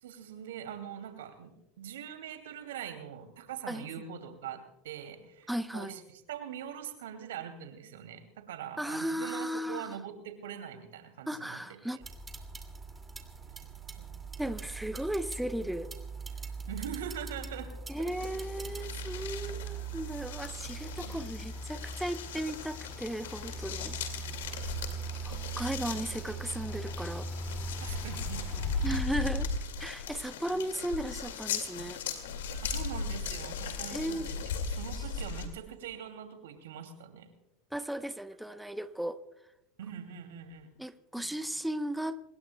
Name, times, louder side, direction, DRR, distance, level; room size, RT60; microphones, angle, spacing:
voice 1, 0.0-11.8 14.0-14.1 16.7-17.7 18.0-18.1 18.6-18.7 21.0-21.2 25.8-25.9 27.8-28.5 32.6-34.3 34.7-37.3 39.8-40.7 41.2-41.3, right 9 dB, 85° right, 7 dB, 2.6 m, -43 dB
voice 2, 5.5-5.9 8.8-10.0 11.3-12.0 14.4-15.9 17.9-24.0 25.2-27.3 28.8-29.5 29.8-32.0 33.9-34.3 37.7-39.2 40.8-42.2, right 1 dB, 5° right, 10 dB, 0.8 m, -36 dB
sound 1, 12.0-29.0, right 4 dB, 20° right, 2.4 m, -41 dB
sound 2, 18.1-35.5, left 5 dB, 85° left, 2.2 m, -38 dB
26.5 x 20.5 x 2.3 m, 0.91 s
hypercardioid pair, 95°, 0 cm